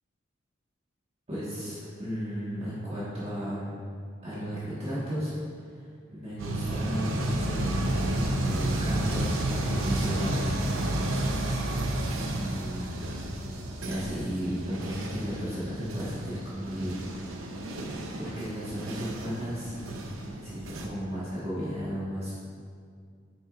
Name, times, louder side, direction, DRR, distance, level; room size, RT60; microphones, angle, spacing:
voice 1, 1.3-3.8 4.2-10.6 12.2-12.9 13.8-17.0 18.2-19.7 20.2-22.3, equal, 30° right, -10 dB, 1.5 m, -34 dB
sound 1, 6.4-20.9, right 1 dB, 90° right, 0.8 m, -31 dB
8.7 x 6.3 x 2.5 m, 2.2 s
head